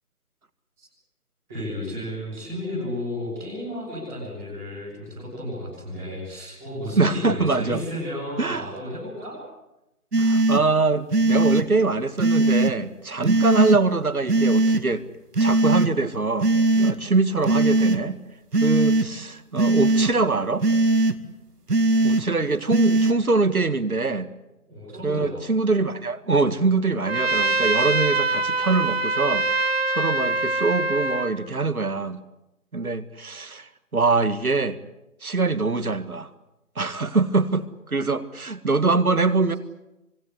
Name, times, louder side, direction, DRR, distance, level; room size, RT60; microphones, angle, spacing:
voice 1, 1.5-9.4 24.6-25.4, left 1 dB, ahead, -13 dB, 1.6 m, -33 dB
voice 2, 6.9-7.8 8.4-8.7 10.2-15.0 15.4-18.2 18.6-20.7 22.0-24.3 25.0-29.5 29.9-32.2 32.7-34.8 35.2-36.3 36.8-39.6, right 3 dB, 70° right, 12 dB, 2.0 m, -23 dB
sound 1, 10.1-10.6 11.1-11.6 12.2-12.7 13.2-13.8 14.3-14.8 15.3-15.9 16.4-16.9 17.4-18.0 18.5-19.1 19.6-20.1 20.6-21.1 21.7-22.2 22.7-23.1, right 2 dB, 90° right, 2.2 m, -19 dB
Trumpet, 27.1-31.3, right 3 dB, 40° right, 1.4 m, -24 dB
25.0 x 23.5 x 8.3 m, 0.91 s
figure-of-eight pair, 175°, 45 cm